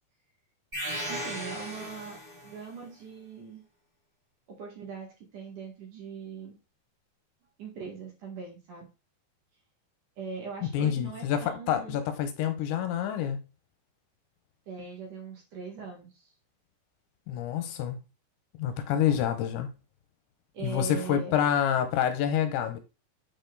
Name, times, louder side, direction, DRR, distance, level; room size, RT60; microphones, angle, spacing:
sound 1, 0.7-2.6, equal, 15° right, 2.1 m, -36 dB
voice 1, 1.1-3.6 4.5-6.5 7.6-8.9 10.2-12.0 14.7-16.3 20.5-21.4, right 5 dB, 55° right, 2.8 m, -41 dB
voice 2, 10.7-13.4 17.3-18.0 18.6-19.7 20.6-22.8, left 9 dB, 80° left, 3.1 m, -27 dB
8.8 x 4.4 x 3.9 m
omnidirectional pair, 5.3 m